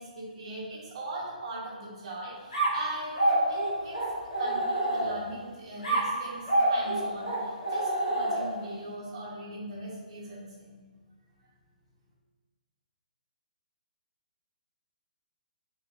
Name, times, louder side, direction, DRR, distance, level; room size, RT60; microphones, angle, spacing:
voice 1, 0.0-4.0 4.3-10.8, right 1 dB, 45° right, -5 dB, 1.3 m, -40 dB
sound 1, 2.5-5.4 5.8-8.7, right 1 dB, 45° left, 1.3 m, -28 dB
5.5 x 2.6 x 2.5 m, 1.4 s
figure-of-eight pair, 130°, 5 cm